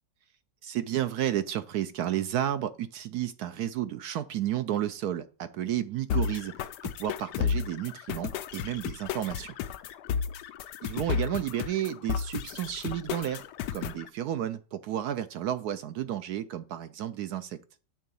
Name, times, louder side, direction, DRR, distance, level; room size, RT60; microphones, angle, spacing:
voice 1, 0.6-6.5 7.0-9.5 10.8-13.4 13.7-17.6, right 11 dB, 70° right, 12 dB, 1.0 m, -32 dB
sound 1, 6.1-14.1, left 7 dB, 70° left, 1.1 m, -33 dB
9.0 x 3.8 x 6.9 m, 0.39 s
omnidirectional pair, 2.0 m